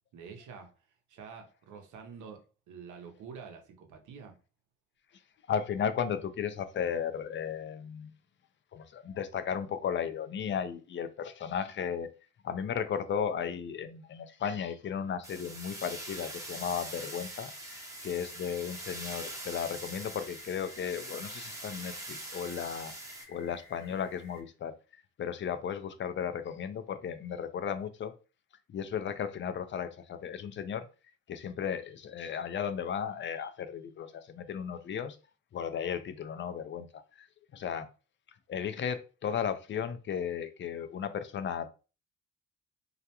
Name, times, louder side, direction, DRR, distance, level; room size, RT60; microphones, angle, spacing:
voice 1, 0.1-0.7 1.1-4.4, right 6 dB, 80° right, 0.7 m, -47 dB
voice 2, 5.5-8.1 8.7-12.1 12.4-22.9 23.3-24.8 25.2-28.1 28.7-30.9 31.3-35.2 35.5-37.3 37.5-37.9 38.5-41.7, left 8 dB, 40° left, 0.4 m, -35 dB
sound 1, 15.2-23.2, right 1 dB, 10° right, 0.7 m, -43 dB
sound 2, 16.2-24.4, left 3 dB, 65° left, 0.8 m, -55 dB
2.3 x 2.1 x 2.8 m
cardioid pair, 90°, 30 cm